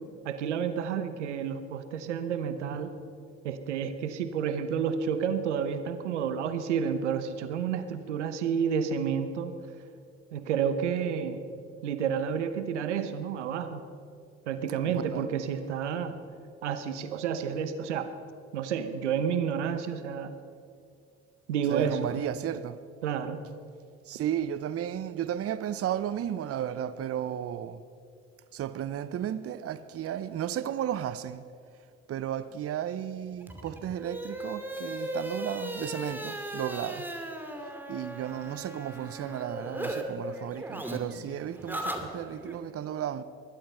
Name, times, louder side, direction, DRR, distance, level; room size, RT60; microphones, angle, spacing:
voice 1, 0.2-2.9 3.4-9.6 10.3-11.4 11.8-13.8 14.5-16.2 16.6-18.1 18.5-20.4 21.5-22.0 23.0-23.4, right 7 dB, 90° right, 1.0 m, -30 dB
voice 2, 14.9-15.3 21.7-22.8 24.0-27.9 28.5-37.1 37.9-43.2, right 10 dB, 45° right, 0.8 m, -34 dB
sound 1, 33.4-40.0 40.3-42.6, right 1 dB, 5° right, 2.5 m, -37 dB
20.5 x 12.0 x 5.6 m
hypercardioid pair, 60°, 34 cm